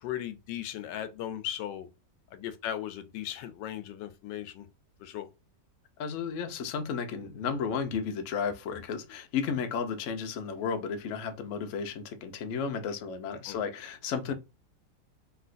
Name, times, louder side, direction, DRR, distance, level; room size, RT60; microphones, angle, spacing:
voice 1, 0.0-1.9 2.3-4.7 5.0-5.3 13.5-13.6 14.3-14.4, left 11 dB, 85° left, 1.2 m, -37 dB
voice 2, 6.0-14.3, left 6 dB, 70° left, 0.7 m, -33 dB
3.1 x 2.8 x 2.5 m
omnidirectional pair, 1.9 m